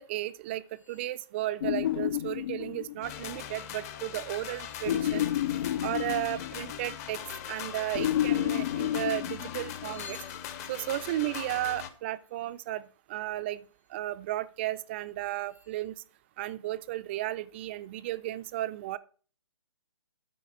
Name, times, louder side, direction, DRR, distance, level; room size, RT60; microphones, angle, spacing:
voice 1, 0.0-5.3 5.8-7.2 7.5-10.2 10.7-16.0 16.4-19.0, right 15 dB, 25° right, 0.4 m, -34 dB
sound 1, 0.7-1.3 1.8-2.5 4.1-5.8 8.4-8.9 9.6-13.1 13.5-14.0 14.6-14.7 15.1-15.9, left 5 dB, 80° left, 2.3 m, -58 dB
sound 2, 1.6-3.3 4.9-7.0 7.9-10.1, left 12 dB, 50° left, 0.4 m, -30 dB
sound 3, 3.0-11.9, left 9 dB, 30° left, 0.9 m, -41 dB
13.0 x 4.9 x 4.8 m
hypercardioid pair, 145°, 16 cm